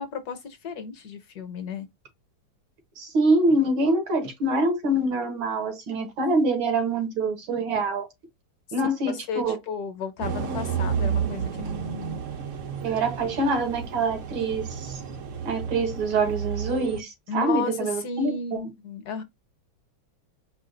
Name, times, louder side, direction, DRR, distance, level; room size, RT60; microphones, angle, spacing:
voice 1, 0.0-1.9 9.3-12.2 17.3-19.2, left 5 dB, 65° left, 1.1 m, -33 dB
voice 2, 3.0-8.1 8.7-9.6 12.8-14.9 15.5-18.6, right 2 dB, 85° right, 2.3 m, -25 dB
sound 1, 10.2-17.0, right 7 dB, 65° right, 0.8 m, -31 dB
4.9 x 2.3 x 3.8 m
omnidirectional pair, 2.2 m